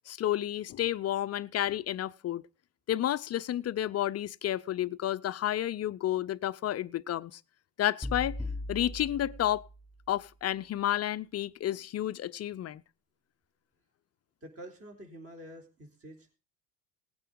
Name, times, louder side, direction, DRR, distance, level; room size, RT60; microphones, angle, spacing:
voice 1, 0.1-2.4 2.9-7.4 7.8-8.4 8.7-9.7 10.1-12.8, left 12 dB, 35° left, 0.6 m, -31 dB
sound 1, 8.0-10.1, left 2 dB, 5° right, 3.6 m, -39 dB
voice 2, 14.4-16.4, right 1 dB, 30° right, 3.9 m, -48 dB
19.0 x 9.1 x 3.9 m
hypercardioid pair, 85°, 47 cm